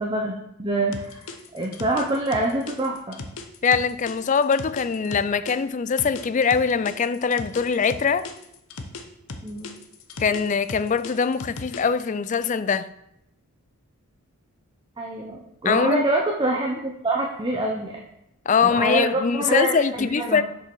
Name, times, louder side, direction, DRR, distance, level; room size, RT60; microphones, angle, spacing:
voice 1, 0.0-3.2 9.4-9.7 15.0-18.0 18.6-19.7 20.0-20.4, right 2 dB, 20° right, 0.7 m, -26 dB
sound 1, 0.9-5.5 6.0-9.0 9.3-12.0, left 3 dB, 65° left, 0.9 m, -37 dB
voice 2, 3.6-8.3 10.2-12.9 15.6-16.0 18.5-20.4, left 5 dB, 35° left, 0.3 m, -22 dB
6.9 x 5.5 x 6.1 m
head